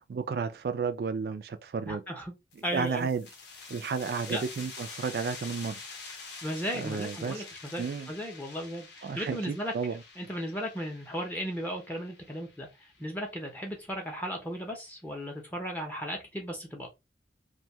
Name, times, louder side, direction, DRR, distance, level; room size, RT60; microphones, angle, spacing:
voice 1, 0.1-2.0 2.7-3.3 3.7-5.8 6.7-7.4 7.8-8.1 9.0-10.0, right 5 dB, 55° right, 0.3 m, -32 dB
voice 2, 1.8-2.3 2.6-3.1 4.3-4.4 6.4-9.7 10.2-16.9, equal, 10° left, 0.6 m, -36 dB
sound 1, 2.5-13.8, left 4 dB, 70° left, 0.6 m, -47 dB
2.6 x 2.2 x 2.7 m
head